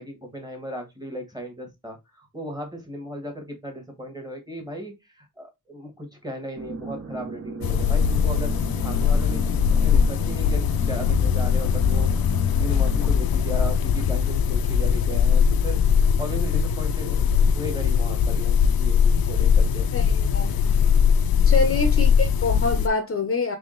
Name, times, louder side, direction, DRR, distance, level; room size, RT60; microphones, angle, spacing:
voice 1, 0.0-8.6 8.8-12.1 12.5-15.8 16.2-19.9 21.4-21.6, equal, 10° right, 1.2 m, -36 dB
sound 1, 6.5-13.2, right 4 dB, 45° right, 0.6 m, -37 dB
sound 2, 7.6-22.9, left 7 dB, 80° left, 0.5 m, -20 dB
voice 2, 19.9-20.8 21.5-23.6, left 4 dB, 40° left, 0.6 m, -26 dB
3.5 x 3.5 x 3.7 m
wide cardioid pair, 175°, 35 cm